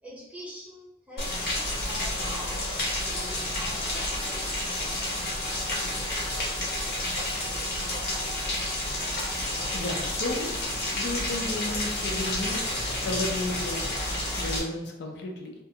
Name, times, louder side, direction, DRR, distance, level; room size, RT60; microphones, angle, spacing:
voice 1, 0.0-2.6 3.0-4.5, equal, 5° right, -6 dB, 0.6 m, -43 dB
Rain, 1.2-14.6, left 1 dB, 60° left, 0.8 m, -30 dB
voice 2, 9.6-12.6 13.0-13.9 14.4-15.5, left 2 dB, 75° left, 2 dB, 0.4 m, -33 dB
2.4 x 2.4 x 2.7 m, 0.94 s
head